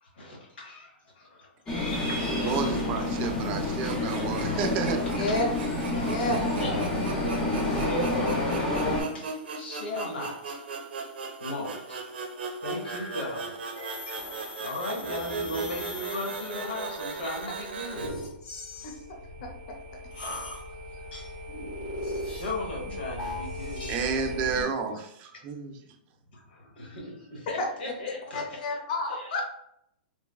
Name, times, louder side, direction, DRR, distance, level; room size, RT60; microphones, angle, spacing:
voice 1, 0.0-2.3 5.3-5.4 6.6-8.8 9.1-10.6 11.4-12.1 12.6-13.6 14.6-18.2 18.8-18.9 20.7-21.4 22.2-24.0 26.3-28.4 29.1-29.4, left 1 dB, 85° left, -1 dB, 1.0 m, -37 dB
sound 1, 1.7-9.0, left 2 dB, 15° left, 0.7 m, -28 dB
voice 2, 2.3-5.0 23.9-25.7, right 5 dB, 30° right, 5 dB, 0.4 m, -30 dB
sound 2, 3.7-18.1, right 4 dB, 85° right, 0.5 m, -38 dB
voice 3, 5.1-5.5 5.8-6.4 18.8-18.9 19.4-19.8 27.6-27.7 28.3-29.4, left 2 dB, 50° left, 2 dB, 0.7 m, -30 dB
sound 3, 12.8-24.6, left 1 dB, 70° left, 1.4 m, -39 dB
3.2 x 2.1 x 2.2 m, 0.74 s
hypercardioid pair, 145°, 5 cm